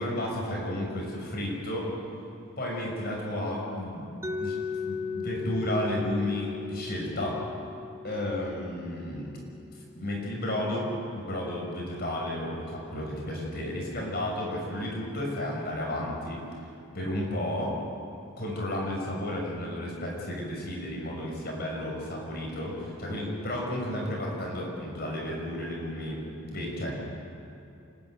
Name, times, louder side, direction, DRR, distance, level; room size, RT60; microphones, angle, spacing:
voice 1, 0.0-1.9 2.6-4.1 4.4-4.6 4.9-7.4 8.0-9.3 9.7-16.4 16.9-17.8 18.4-27.0, left 1 dB, 45° left, -1 dB, 6.1 m, -32 dB
Mallet percussion, 4.2-10.1, left 5 dB, 10° right, 0.8 m, -37 dB
28.5 x 12.5 x 9.4 m, 2.6 s
head